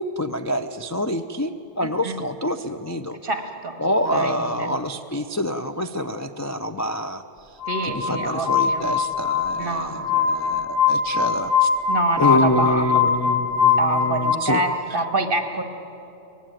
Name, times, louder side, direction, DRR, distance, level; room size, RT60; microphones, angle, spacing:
voice 1, 0.0-3.2 3.8-7.2 7.8-11.7 12.2-14.6, left 1 dB, 20° left, 6 dB, 0.5 m, -26 dB
voice 2, 1.8-2.1 3.2-4.7 7.7-8.9 9.6-10.2 11.9-12.9 13.8-15.6, right 1 dB, 50° right, 5 dB, 2.2 m, -26 dB
Glass, 7.6-14.3, left 6 dB, 85° left, 3.8 m, -22 dB
24.0 x 19.5 x 9.2 m, 2.9 s
omnidirectional pair, 1.2 m